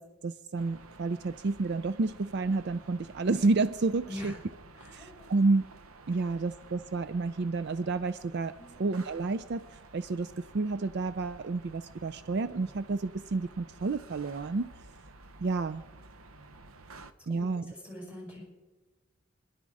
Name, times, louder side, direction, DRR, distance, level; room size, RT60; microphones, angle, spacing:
voice 1, 0.0-4.3 4.9-5.6 6.1-14.7 15.4-15.8 17.3-17.7, right 3 dB, 55° right, 12 dB, 0.4 m, -30 dB
sound 1, 0.6-17.1, right 3 dB, 85° right, 0.9 m, -52 dB
voice 2, 4.7-5.3 8.6-8.7 17.3-18.4, left 1 dB, 5° right, -2 dB, 6.1 m, -43 dB
26.0 x 11.5 x 4.9 m, 1.2 s
head